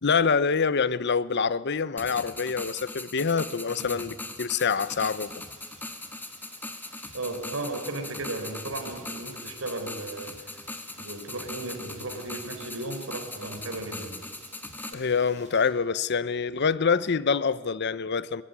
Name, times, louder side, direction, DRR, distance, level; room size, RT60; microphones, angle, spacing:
voice 1, 0.0-5.4 14.9-18.4, left 5 dB, 55° left, 0.7 m, -26 dB
sound 1, 2.0-14.9, left 2 dB, 10° left, 1.8 m, -40 dB
Rain, 4.6-15.7, right 4 dB, 35° right, 4.3 m, -55 dB
voice 2, 7.1-10.6 11.0-14.2, right 2 dB, 75° right, 4.7 m, -35 dB
23.0 x 22.5 x 9.7 m
head